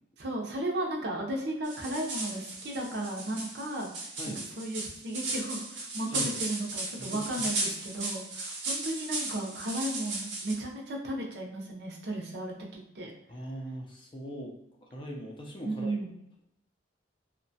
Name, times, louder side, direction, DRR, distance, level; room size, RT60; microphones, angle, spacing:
voice 1, 0.2-3.9 4.3-13.1 15.6-16.1, right 1 dB, 60° right, -1 dB, 0.6 m, -35 dB
sound 1, 1.6-10.5, right 2 dB, 90° right, 0.8 m, -36 dB
voice 2, 4.2-4.5 6.1-6.4 7.0-7.3 13.3-14.5 14.8-16.0, equal, 25° left, -1 dB, 0.4 m, -40 dB
2.8 x 2.1 x 2.7 m, 0.80 s
head